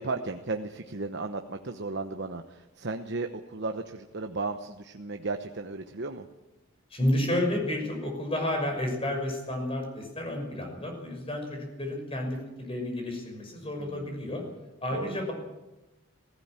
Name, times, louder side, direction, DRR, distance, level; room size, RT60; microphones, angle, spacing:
voice 1, 0.0-6.3 13.8-14.2 14.9-15.2, right 3 dB, 55° right, 6 dB, 1.0 m, -35 dB
voice 2, 6.9-14.4 14.8-15.3, left 1 dB, 25° left, 3 dB, 5.8 m, -31 dB
19.0 x 16.5 x 8.9 m, 1.0 s
head